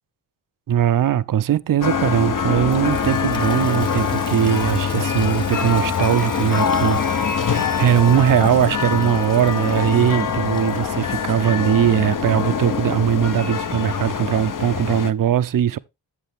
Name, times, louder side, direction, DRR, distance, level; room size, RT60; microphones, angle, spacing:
voice 1, 0.7-15.8, right 10 dB, 50° right, 0.5 m, -20 dB
sound 1, 1.8-15.1, left 6 dB, 45° left, 0.8 m, -24 dB
Toilet flush, 2.5-11.0, left 2 dB, 10° left, 0.8 m, -40 dB
Laughter, 13.3-13.4, left 4 dB, 80° left, 2.3 m, -49 dB
8.2 x 7.6 x 3.4 m
cardioid pair, 60°, 44 cm